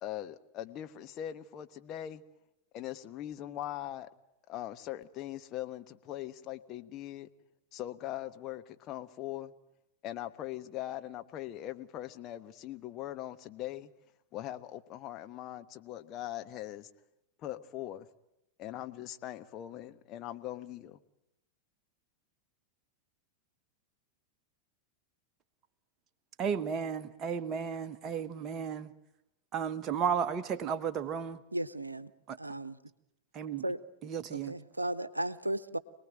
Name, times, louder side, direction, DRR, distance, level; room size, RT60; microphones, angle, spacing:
voice 1, 0.0-2.2 2.7-4.1 4.5-7.3 7.7-9.5 10.0-13.9 14.3-16.9 17.4-18.1 18.6-21.0, left 13 dB, 35° left, 1.2 m, -41 dB
voice 2, 26.4-28.9 29.5-31.4 32.3-32.4 33.3-33.6 34.0-34.6, right 7 dB, 30° right, 1.4 m, -33 dB
voice 3, 31.5-32.1 32.4-32.8 33.6-33.8 34.3-35.8, right 1 dB, 85° right, 0.9 m, -35 dB
26.5 x 19.5 x 9.0 m
figure-of-eight pair, 90°, 0 cm